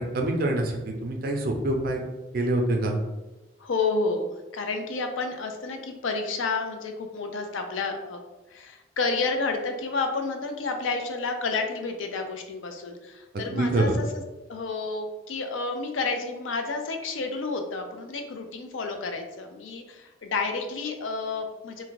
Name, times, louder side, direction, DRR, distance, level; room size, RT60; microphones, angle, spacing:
voice 1, 0.0-2.0 2.3-3.0 13.3-14.0, right 2 dB, 50° right, 2 dB, 0.5 m, -26 dB
voice 2, 3.6-8.2 8.5-14.2 14.5-21.8, left 3 dB, 85° left, 5 dB, 0.4 m, -30 dB
2.5 x 2.2 x 3.8 m, 1.1 s
head